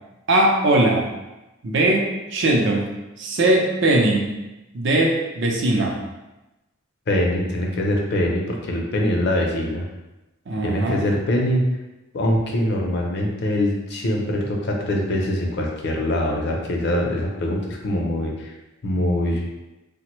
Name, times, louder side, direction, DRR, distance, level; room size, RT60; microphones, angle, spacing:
voice 1, 0.3-1.1 1.6-2.9 3.2-4.3 4.7-6.0 10.5-11.0, right 1 dB, 60° right, 0 dB, 0.5 m, -20 dB
voice 2, 7.1-9.8 10.6-11.6 12.1-18.5 18.8-19.5, left 1 dB, 55° left, 0 dB, 0.5 m, -23 dB
3.2 x 2.1 x 3.0 m, 1.0 s
head